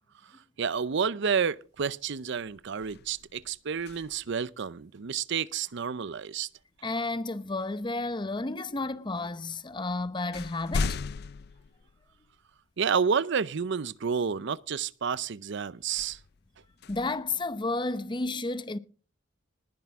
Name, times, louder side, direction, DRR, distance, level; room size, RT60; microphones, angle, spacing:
voice 1, 0.6-6.5 12.8-16.2, right 6 dB, 65° right, 0.6 m, -30 dB
sound 1, 1.7-2.0 2.4-4.5 6.6-6.8 7.6-8.4 9.2-9.3 9.7-12.6 13.1-13.2 15.8-18.0, left 4 dB, 55° left, 0.5 m, -38 dB
voice 2, 6.8-11.0 16.9-18.8, left 2 dB, 25° left, 0.8 m, -32 dB
20.0 x 10.5 x 3.6 m
head